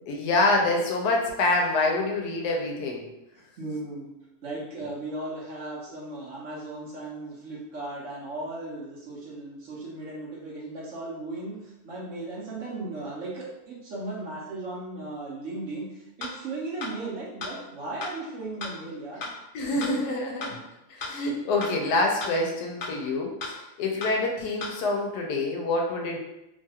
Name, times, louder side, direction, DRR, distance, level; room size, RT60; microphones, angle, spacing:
voice 1, 0.1-3.0 19.5-20.6 20.9-26.2, left 2 dB, 80° left, 1 dB, 1.1 m, -26 dB
voice 2, 3.3-4.1 4.4-19.3, right 2 dB, 55° right, -5 dB, 1.0 m, -36 dB
sound 1, 16.2-16.3 16.8-16.9 17.4-17.5 18.0-18.1 18.6-18.7 19.2-19.3 19.8-19.9 20.4-20.5 21.0-21.1 21.6-21.7 22.2-22.3 22.8-22.9 23.4-23.5 24.0-24.1 24.6-24.7, left 3 dB, 55° left, 0.9 m, -34 dB
3.1 x 2.3 x 2.8 m, 0.89 s
omnidirectional pair, 1.7 m